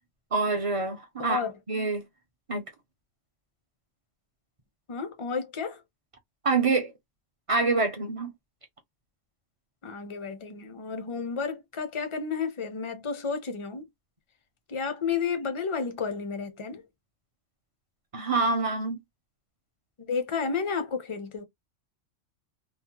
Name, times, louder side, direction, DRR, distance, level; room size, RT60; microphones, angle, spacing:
voice 1, 0.3-2.0 2.5-2.6 6.4-6.9 7.5-8.3 18.1-19.0, right 3 dB, 40° right, 0.5 m, -26 dB
voice 2, 1.2-1.5 4.9-5.8 9.8-13.9 14.7-16.8 20.0-21.4, left 5 dB, 35° left, 0.5 m, -31 dB
3.1 x 2.1 x 2.8 m
omnidirectional pair, 1.3 m